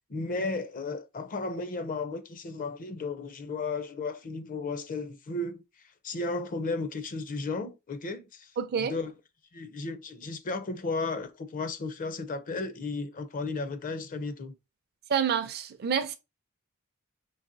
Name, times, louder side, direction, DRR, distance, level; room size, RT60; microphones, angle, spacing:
voice 1, 0.1-5.6 6.0-8.5 8.8-9.1 9.5-14.6, left 3 dB, 40° left, 0.5 m, -34 dB
voice 2, 8.6-8.9 15.1-16.1, right 7 dB, 45° right, 0.4 m, -28 dB
3.9 x 3.0 x 2.6 m
head